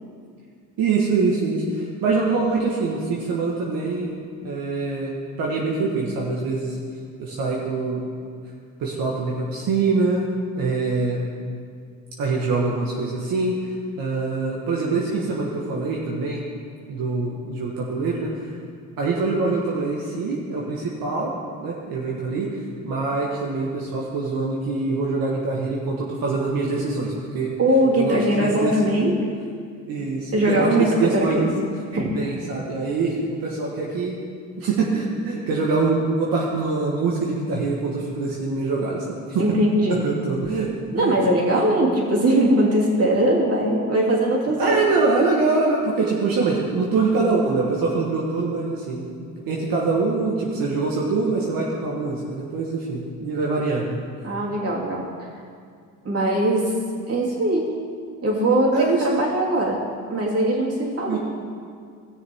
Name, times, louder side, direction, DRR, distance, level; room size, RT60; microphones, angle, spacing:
voice 1, 0.8-4.2 4.4-6.8 7.2-8.1 8.8-10.3 10.5-11.2 12.2-16.4 16.9-18.5 19.0-21.3 21.6-27.5 27.9-28.7 29.9-31.5 32.1-34.2 34.6-39.4 39.9-40.7 40.9-41.1 41.5-41.6 44.6-54.0 58.7-59.2 60.8-61.2, right 3 dB, 80° right, -3 dB, 1.4 m, -24 dB
voice 2, 27.6-29.2 30.3-31.5 31.9-32.2 39.4-40.0 40.9-44.8 54.2-55.1 56.0-56.7 57.1-57.7 58.2-59.8 60.1-61.2, right 1 dB, 45° right, -4 dB, 2.9 m, -20 dB
17.0 x 6.7 x 3.5 m, 2.2 s
cardioid pair, 80°, 34 cm